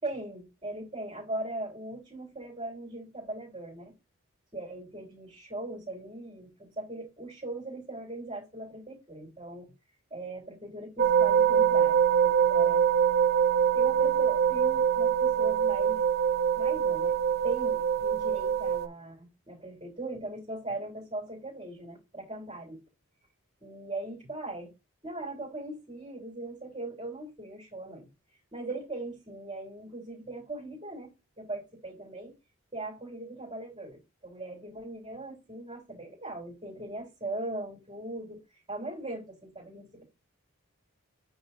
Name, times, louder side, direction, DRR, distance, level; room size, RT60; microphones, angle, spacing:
voice 1, 0.0-3.9 4.5-9.7 10.1-12.8 13.7-16.0 16.6-22.8 23.6-24.7 25.0-28.1 28.5-32.3 32.7-38.4 38.7-40.0, right 2 dB, 25° right, 3.7 m, -39 dB
sound 1, 11.0-18.9, right 8 dB, 45° right, 0.9 m, -24 dB
9.1 x 3.6 x 4.2 m
head